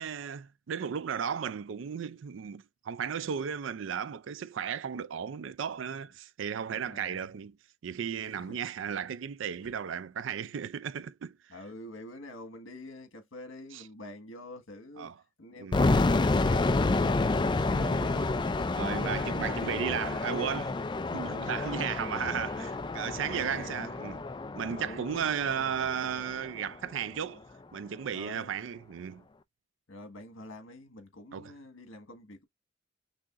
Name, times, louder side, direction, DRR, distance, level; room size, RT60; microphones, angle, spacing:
voice 1, 0.0-7.6 7.8-11.4 13.7-13.8 15.0-15.1 15.6-15.9 17.7-18.3 18.7-20.8 21.1-24.2 24.5-27.4 27.7-29.2 31.3-31.5, right 7 dB, 65° right, 0.4 m, -35 dB
voice 2, 6.7-7.2 8.3-8.6 9.6-9.7 10.4-10.5 11.5-15.1 15.4-17.4 21.6-22.0 23.2-23.9 24.8-25.2 28.1-28.5 29.9-32.4, left 1 dB, 85° left, 1.5 m, -47 dB
sound 1, 15.7-26.6, left 3 dB, 25° left, 0.4 m, -29 dB
6.1 x 2.8 x 2.5 m
head